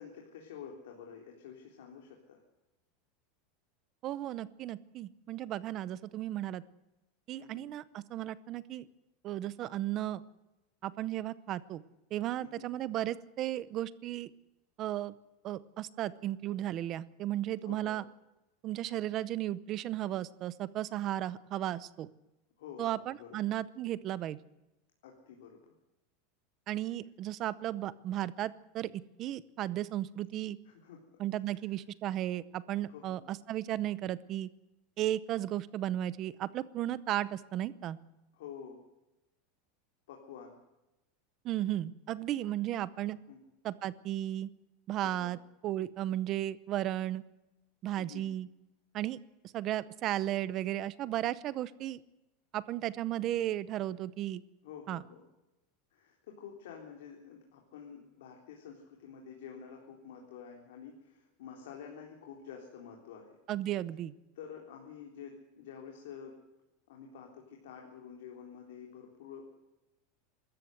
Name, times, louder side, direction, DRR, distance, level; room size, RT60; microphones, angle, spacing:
voice 1, 0.0-2.4 7.4-7.7 12.4-12.7 17.6-18.0 22.6-23.4 25.0-25.7 30.7-31.0 31.5-31.6 32.9-33.2 38.3-38.8 40.1-40.6 43.3-43.4 45.0-45.4 48.0-48.3 54.6-55.2 55.9-63.4 64.4-66.4 66.9-69.5, left 7 dB, 75° left, 1 dB, 3.7 m, -49 dB
voice 2, 4.0-6.6 7.3-8.9 9.2-10.2 10.8-11.8 12.1-14.3 14.8-15.1 15.4-18.1 18.6-22.1 22.8-24.4 26.7-30.6 31.2-34.5 35.0-38.0 41.4-43.2 43.6-44.5 44.9-45.4 45.6-47.2 47.8-48.5 48.9-49.2 49.5-52.0 52.5-54.4 54.9-55.0 63.5-64.1, right 13 dB, 25° right, 17 dB, 0.7 m, -35 dB
24.5 x 14.0 x 8.0 m, 0.98 s
supercardioid pair, 180°, 0 cm